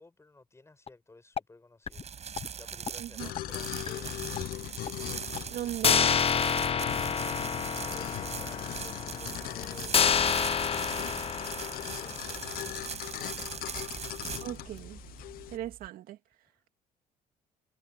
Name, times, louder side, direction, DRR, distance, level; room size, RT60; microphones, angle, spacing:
voice 1, 0.0-4.8 16.5-16.6, left 3 dB, 20° left, 5.8 m, -56 dB
sound 1, 0.9-1.0 1.4-1.5 1.9-2.0 2.4-2.5 2.9-3.0 3.4-3.5 3.9-4.0 4.4-4.5 4.9-5.0 5.4-5.5 5.8-12.5, left 7 dB, 40° left, 1.0 m, -29 dB
sound 2, 1.9-15.9, right 7 dB, 45° right, 6.3 m, -41 dB
voice 2, 3.0-3.3 5.5-6.2 14.4-15.0 15.5-16.2, right 13 dB, 75° right, 2.3 m, -37 dB
sound 3, 3.2-15.6, left 15 dB, 75° left, 0.8 m, -40 dB
supercardioid pair, 80°, 15 cm